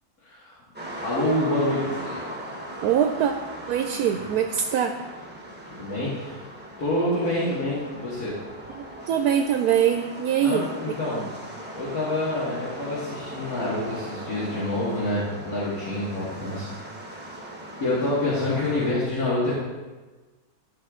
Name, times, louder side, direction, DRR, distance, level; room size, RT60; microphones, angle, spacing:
voice 1, 0.2-0.5 1.0-2.2 5.7-6.4 6.8-8.4 10.4-11.2 11.8-16.7 17.8-19.5, left 1 dB, 75° left, -10 dB, 2.5 m, -27 dB
sound 1, 0.7-18.9, right 1 dB, 10° right, 1.0 m, -39 dB
voice 2, 2.8-3.3 3.7-4.9 8.7-10.7 11.1-11.3, right 9 dB, 80° right, 5 dB, 1.1 m, -23 dB
13.0 x 4.5 x 3.7 m, 1.3 s
omnidirectional pair, 1.6 m